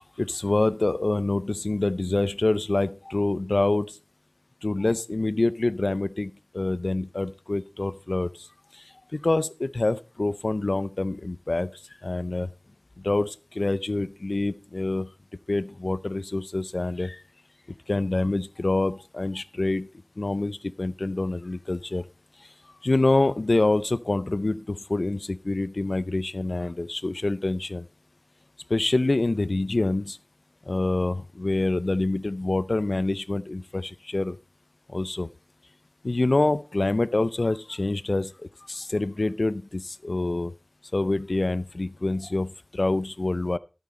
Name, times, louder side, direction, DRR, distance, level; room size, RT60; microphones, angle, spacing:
voice 1, 0.2-4.0 4.6-8.3 8.7-8.8 9.1-11.7 12.0-12.5 13.0-15.1 15.5-17.2 17.9-19.9 20.2-22.0 22.8-27.9 28.7-30.2 30.7-34.4 34.9-35.3 36.0-38.3 38.7-40.5 40.9-43.6, left 2 dB, 70° left, 17 dB, 0.5 m, -26 dB
12.5 x 8.9 x 4.2 m, 0.31 s
wide cardioid pair, 50°, 0 cm